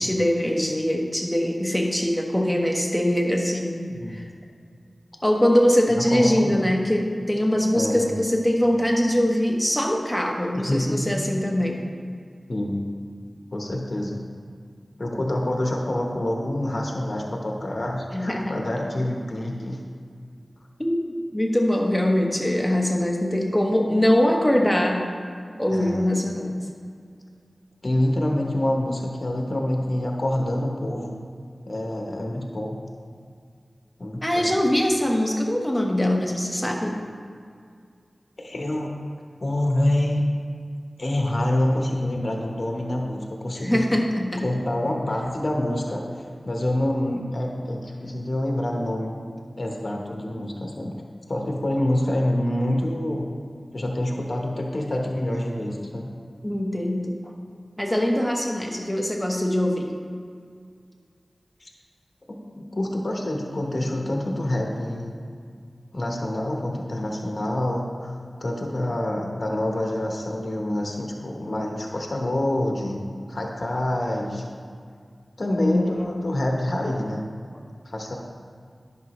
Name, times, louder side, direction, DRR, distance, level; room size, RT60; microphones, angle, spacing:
voice 1, 0.0-4.2 5.2-11.8 18.1-18.6 20.8-21.0 21.3-25.0 25.6-26.6 34.2-37.0 43.6-44.5 56.4-57.2 57.8-59.9 75.6-76.3, left 1 dB, 10° left, 0 dB, 1.2 m, -22 dB
voice 2, 6.0-6.6 7.7-8.2 10.5-11.2 12.5-12.8 13.5-14.2 15.0-19.8 25.7-26.1 27.8-31.2 31.6-32.8 34.0-34.5 38.4-38.9 39.4-40.2 41.0-43.8 44.4-49.1 49.6-50.9 51.3-53.3 53.7-56.1 61.6-61.7 62.3-65.1 65.9-73.0 73.3-74.4 75.4-77.2 77.8-78.2, left 1 dB, 60° left, 0 dB, 1.1 m, -26 dB
10.5 x 5.9 x 3.1 m, 2.2 s
cardioid pair, 40°, 0 cm